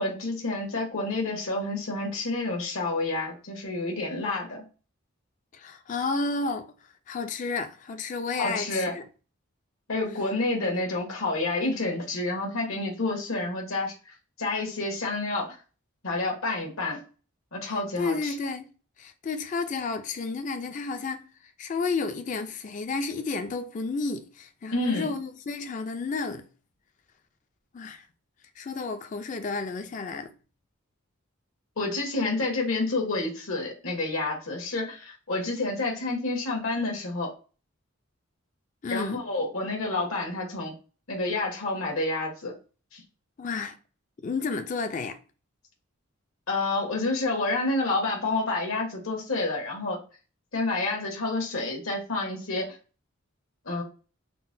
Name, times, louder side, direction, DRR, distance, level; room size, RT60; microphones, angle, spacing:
voice 1, 0.0-4.6 8.4-8.9 9.9-15.6 16.0-17.0 17.5-18.3 24.7-25.1 31.8-37.3 38.9-40.7 41.1-42.5 42.9-43.0 46.5-50.0 50.5-52.8 53.6-53.8, left 2 dB, 75° left, 1.2 m, -29 dB
voice 2, 5.5-6.7 7.1-9.0 10.6-10.7 17.7-18.7 19.0-21.3 21.6-26.5 27.7-28.1 28.6-30.3 38.8-39.2 43.4-43.8 44.2-45.2, left 4 dB, 35° left, 0.3 m, -31 dB
3.8 x 2.1 x 2.6 m
head